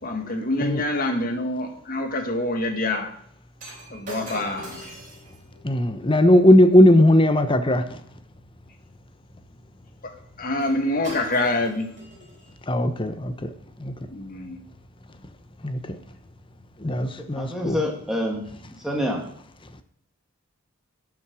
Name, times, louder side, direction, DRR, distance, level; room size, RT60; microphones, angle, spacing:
voice 1, 0.0-3.1 3.9-4.8 10.0-10.1 10.4-11.9 14.1-14.6, left 2 dB, 45° left, 4 dB, 1.8 m, -26 dB
Shatter, 3.6-8.0 10.6-10.8 11.0-12.5 13.3-13.4, right 1 dB, 40° right, 4.3 m, -43 dB
voice 2, 5.6-8.0 12.7-13.5 13.8-14.0 15.6-16.0 16.8-17.8, left 1 dB, 25° left, 9 dB, 0.9 m, -18 dB
voice 3, 17.0-18.5 18.8-19.2, equal, ahead, -1 dB, 2.3 m, -27 dB
11.5 x 6.0 x 6.3 m, 0.64 s
head